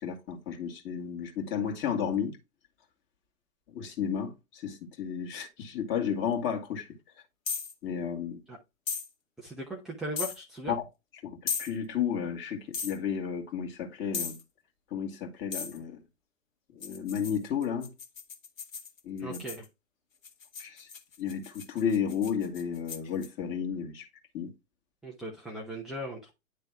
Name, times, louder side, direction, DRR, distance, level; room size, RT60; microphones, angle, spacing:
voice 1, 0.0-2.4 3.7-6.9 7.8-8.4 10.7-10.8 11.2-14.4 14.9-16.0 16.7-17.9 19.0-19.4 20.6-20.9 21.2-24.1 24.3-24.5, left 7 dB, 30° left, 1.9 m, -32 dB
sound 1, 7.5-7.7 8.9-9.1 10.2-10.4 11.5-11.7 12.7-13.0 14.1-14.4 15.5-15.8 16.8-19.7 20.2-23.3, left 5 dB, 75° left, 1.8 m, -36 dB
voice 2, 9.4-10.8 19.2-19.7 25.0-26.3, right 1 dB, ahead, 0.4 m, -38 dB
10.0 x 3.4 x 3.4 m
hypercardioid pair, 125°, 40 cm